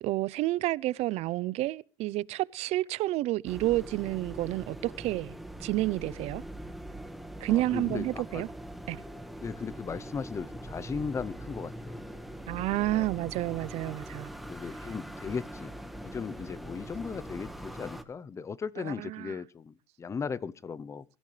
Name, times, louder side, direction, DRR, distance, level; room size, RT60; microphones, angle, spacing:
voice 1, 0.0-6.4 7.4-8.5 8.9-9.0 12.5-14.3 18.9-19.3, right 17 dB, 60° right, 0.7 m, -30 dB
sound 1, 3.4-18.0, right 1 dB, ahead, 1.5 m, -42 dB
voice 2, 7.5-8.5 9.4-12.0 12.9-13.1 14.4-15.7 16.0-21.0, left 5 dB, 25° left, 0.8 m, -37 dB
23.0 x 14.5 x 3.3 m
supercardioid pair, 115°, 12 cm